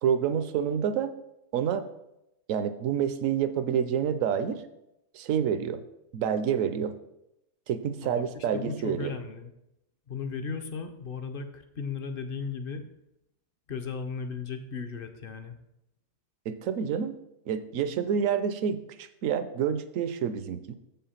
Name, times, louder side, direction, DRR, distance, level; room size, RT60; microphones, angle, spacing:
voice 1, 0.0-1.1 1.5-1.9 2.5-4.6 5.1-5.8 6.1-6.9 7.7-9.1 16.5-17.1 17.5-20.7, right 8 dB, 70° right, 11 dB, 1.0 m, -28 dB
voice 2, 8.0-9.5 10.1-12.9 13.7-15.6, left 5 dB, 50° left, 8 dB, 0.7 m, -36 dB
7.1 x 5.7 x 5.6 m, 0.87 s
omnidirectional pair, 1.5 m